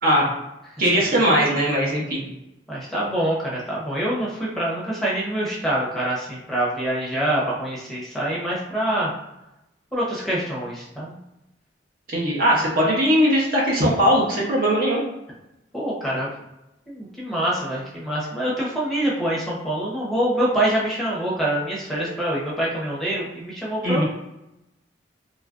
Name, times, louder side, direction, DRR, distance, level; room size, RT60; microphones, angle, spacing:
voice 1, 0.8-2.2 12.1-15.0 23.8-24.0, equal, 55° right, -3 dB, 0.8 m, -19 dB
voice 2, 2.7-9.1 9.9-11.1 15.7-16.3 16.9-24.0, right 1 dB, ahead, -6 dB, 0.7 m, -25 dB
3.1 x 2.4 x 2.4 m, 0.91 s
head